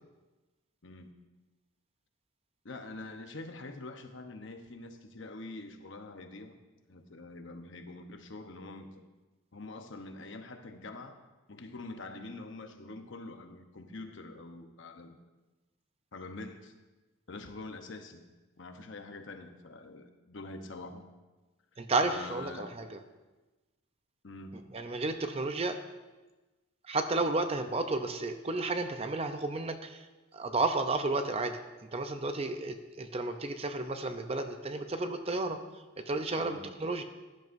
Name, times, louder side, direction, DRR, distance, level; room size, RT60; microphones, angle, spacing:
voice 1, 2.6-6.5 6.9-9.0 9.5-11.2 11.5-15.2 16.1-16.7 17.3-18.2 18.6-21.0 22.0-22.8 24.2-24.5 36.4-36.6, left 2 dB, 55° left, 6 dB, 0.9 m, -45 dB
voice 2, 21.8-23.0 24.5-25.8 26.9-30.1 30.3-31.6 31.9-35.6 36.1-37.0, right 2 dB, 25° right, 7 dB, 0.6 m, -32 dB
16.5 x 11.0 x 2.6 m, 1.2 s
head